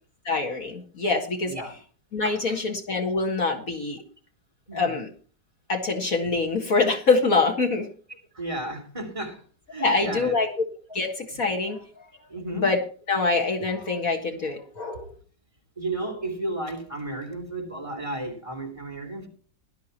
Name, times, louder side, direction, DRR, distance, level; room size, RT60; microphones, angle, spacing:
voice 1, 0.3-1.5 2.1-4.0 4.7-5.1 5.7-7.9 9.8-10.5 10.9-12.1 12.5-12.8 13.1-15.1, left 3 dB, 55° left, 2.1 m, -25 dB
voice 2, 1.4-1.7 2.2-2.6 4.7-5.0 8.3-9.4 9.7-10.4 12.3-12.7 15.8-19.3, right 2 dB, 15° right, 3.6 m, -33 dB
18.0 x 12.5 x 2.9 m
omnidirectional pair, 1.9 m